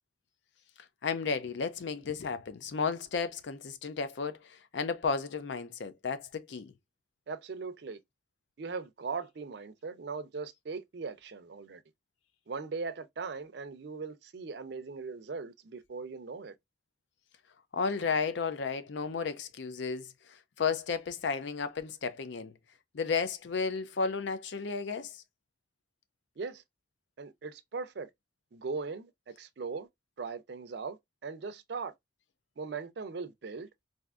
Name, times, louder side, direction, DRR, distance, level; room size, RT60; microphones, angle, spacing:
voice 1, 1.0-6.7 17.7-22.6 22.9-25.2, left 5 dB, 70° left, 0.4 m, -33 dB
voice 2, 7.3-8.0 8.6-11.8 12.5-16.5 26.4-26.6 27.2-28.1 28.5-29.9 30.2-31.9 32.6-33.7, right 4 dB, 60° right, 0.4 m, -39 dB
3.4 x 2.6 x 2.4 m
head